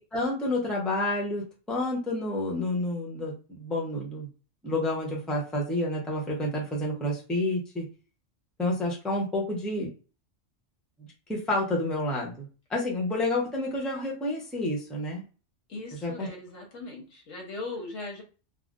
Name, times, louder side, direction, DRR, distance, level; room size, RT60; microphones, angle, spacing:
voice 1, 0.0-4.3 4.6-7.9 8.6-9.9 11.0-15.2 16.0-16.3, left 1 dB, ahead, -2 dB, 0.6 m, -29 dB
voice 2, 15.7-18.2, left 3 dB, 80° left, 0 dB, 1.4 m, -39 dB
3.8 x 2.0 x 2.5 m, 0.34 s
omnidirectional pair, 1.3 m